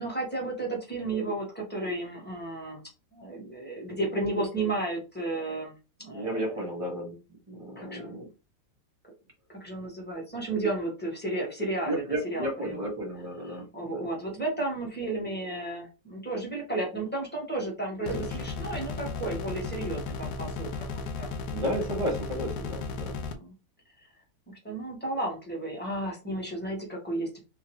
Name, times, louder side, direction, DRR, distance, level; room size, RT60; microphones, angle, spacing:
voice 1, 0.0-2.8 3.1-5.7 6.0-6.6 7.8-8.2 9.5-12.0 12.3-12.9 13.5-21.3 23.3-23.5 24.0-24.1 24.5-27.4, right 2 dB, 5° left, -2 dB, 1.1 m, -33 dB
voice 2, 6.0-8.3 11.8-14.1 18.1-18.3 21.5-23.2, equal, 25° right, 0 dB, 0.9 m, -33 dB
sound 1, 18.1-23.3, left 4 dB, 70° left, 1.1 m, -35 dB
3.5 x 2.8 x 3.0 m, 0.30 s
omnidirectional pair, 1.9 m